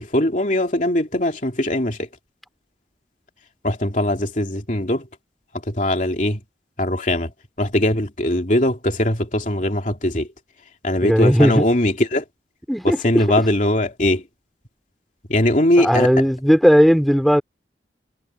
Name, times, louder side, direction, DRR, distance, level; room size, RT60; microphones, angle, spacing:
voice 1, 0.0-2.1 3.6-5.1 5.7-6.4 6.8-7.3 7.6-10.3 10.8-12.2 12.8-14.2 15.3-16.1, left 1 dB, 45° left, 2.9 m, -20 dB
voice 2, 11.0-11.6 12.7-13.2 15.8-17.4, equal, ahead, 3.7 m, -16 dB
head